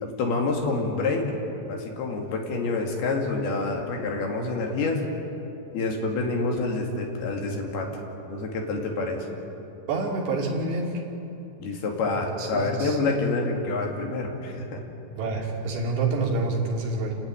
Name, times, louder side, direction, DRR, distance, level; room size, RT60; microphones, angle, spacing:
voice 1, 0.0-1.3 1.7-5.0 5.7-7.9 8.3-9.3 11.6-14.8, left 3 dB, 65° left, 1 dB, 4.2 m, -27 dB
voice 2, 9.9-10.9 12.4-13.0 15.1-17.2, right 3 dB, 80° right, -1 dB, 5.1 m, -27 dB
29.5 x 12.0 x 9.9 m, 2.9 s
omnidirectional pair, 4.9 m